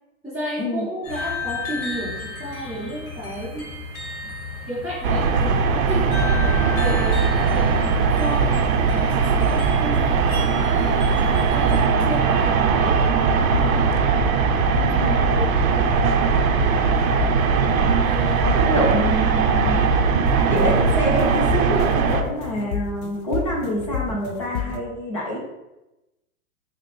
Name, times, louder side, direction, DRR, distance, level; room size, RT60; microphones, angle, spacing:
voice 1, 0.2-3.7 4.7-14.0 14.8-15.6 16.7-17.0 18.0-18.7, equal, 5° right, -12 dB, 1.0 m, -33 dB
sound 1, 1.0-11.8, left 3 dB, 45° left, 1.0 m, -34 dB
sound 2, 5.0-22.2, right 5 dB, 75° right, 0.6 m, -20 dB
sound 3, 13.3-24.8, left 8 dB, 80° left, 0.5 m, -31 dB
voice 2, 14.9-15.2 18.6-19.8 20.5-25.4, equal, 25° left, -3 dB, 0.4 m, -26 dB
4.9 x 2.1 x 3.1 m, 0.97 s
supercardioid pair, 175°, 42 cm